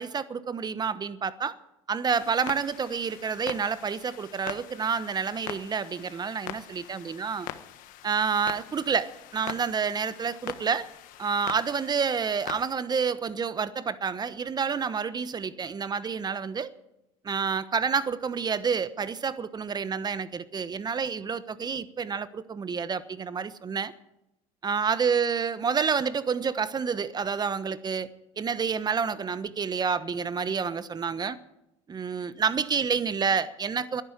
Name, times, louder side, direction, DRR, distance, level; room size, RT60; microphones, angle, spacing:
voice 1, 0.0-1.6 1.9-7.5 8.0-10.9 11.2-16.7 17.2-23.9 24.6-28.1 28.4-31.4 31.9-34.0, right 6 dB, 25° right, 1.1 m, -29 dB
Clock, 2.1-12.6, left 13 dB, 60° left, 1.3 m, -43 dB
13.0 x 11.0 x 9.6 m
hypercardioid pair, 90°, 16 cm